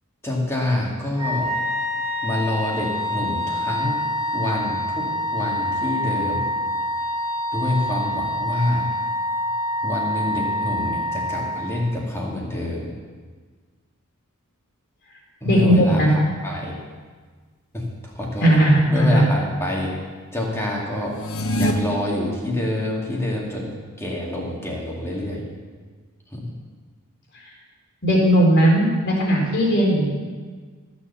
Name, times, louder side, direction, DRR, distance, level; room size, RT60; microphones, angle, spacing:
voice 1, 0.2-1.5 2.2-4.0 4.3-6.5 7.5-8.9 9.8-12.9 15.4-16.8 17.7-18.5 18.9-19.9 20.3-21.2 21.5-25.4 26.3-26.5, left 1 dB, 10° left, -3 dB, 2.3 m, -26 dB
Wind instrument woodwind instrument, 1.1-11.9, left 1 dB, 20° right, 2.5 m, -26 dB
voice 2, 15.4-16.1 18.4-19.2 28.0-30.0, equal, 50° left, -2 dB, 3.6 m, -17 dB
sound 1, 21.1-21.7, equal, 70° left, 1.2 m, -23 dB
14.5 x 7.0 x 7.0 m, 1.5 s
head